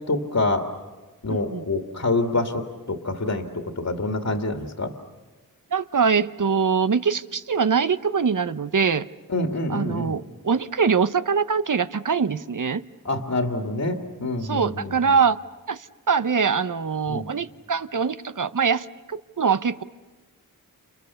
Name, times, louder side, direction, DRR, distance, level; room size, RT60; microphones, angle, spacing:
voice 1, 0.1-0.7 1.2-4.9 9.3-10.2 13.0-14.9 17.1-17.3, left 2 dB, 50° left, 4 dB, 2.1 m, -26 dB
voice 2, 1.3-1.7 5.7-9.1 9.7-12.8 14.4-15.4 15.7-15.8 16.1-19.8, right 6 dB, 60° right, 13 dB, 0.9 m, -23 dB
30.0 x 28.5 x 7.0 m, 1.2 s
cardioid pair, 45°, 36 cm